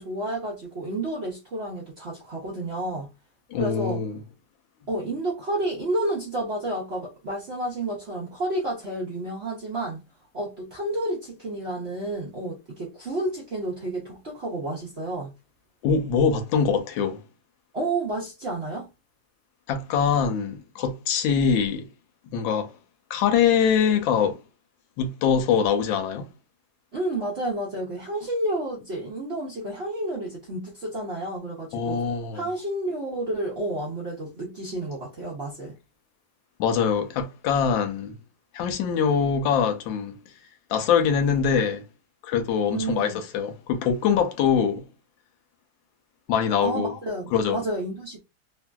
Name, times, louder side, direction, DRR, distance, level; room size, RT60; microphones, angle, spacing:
voice 1, 0.0-3.1 3.6-4.0 4.9-10.0 10.3-15.3 17.7-18.9 26.9-32.0 32.3-35.7 42.7-43.2 46.6-48.2, right 1 dB, 55° right, 0.7 m, -30 dB
voice 2, 3.5-4.2 15.8-17.2 19.7-21.9 22.3-22.7 23.1-24.4 25.0-26.3 31.7-32.4 36.6-38.1 38.5-40.2 40.7-41.8 42.2-44.8 46.3-47.0 47.3-47.6, left 7 dB, 85° left, 1.3 m, -23 dB
3.0 x 2.4 x 2.2 m
omnidirectional pair, 2.0 m